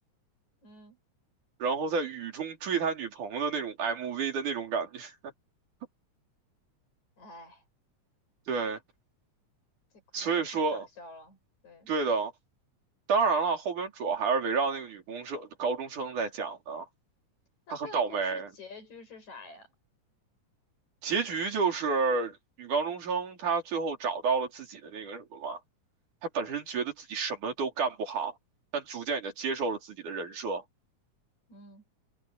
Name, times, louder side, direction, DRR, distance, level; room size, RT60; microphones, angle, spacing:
voice 1, 0.6-1.0 7.2-7.6 10.2-11.4 11.6-11.9 17.7-19.7 31.5-31.8, left 3 dB, 70° left, 8.1 m, -48 dB
voice 2, 1.6-5.1 8.5-8.8 10.1-10.9 11.9-12.3 13.1-16.9 17.7-18.5 21.0-25.6 26.2-28.4 28.7-30.6, right 5 dB, 85° right, 5.2 m, -30 dB
omnidirectional pair, 3.4 m